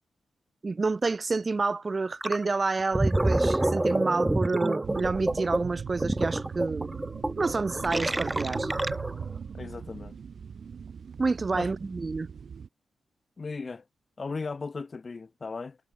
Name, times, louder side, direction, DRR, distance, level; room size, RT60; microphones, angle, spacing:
voice 1, 0.6-6.9 7.4-8.7 11.2-12.3, right 3 dB, 35° right, 1.2 m, -29 dB
Gurgling, 2.2-2.4 2.8-9.3, right 1 dB, 15° right, 0.7 m, -28 dB
sound 1, 4.8-12.7, right 6 dB, 65° right, 0.8 m, -39 dB
voice 2, 9.5-10.2 11.5-11.7 13.4-13.8 14.2-15.8, left 4 dB, 40° left, 1.1 m, -36 dB
cardioid pair, 80°, 0 cm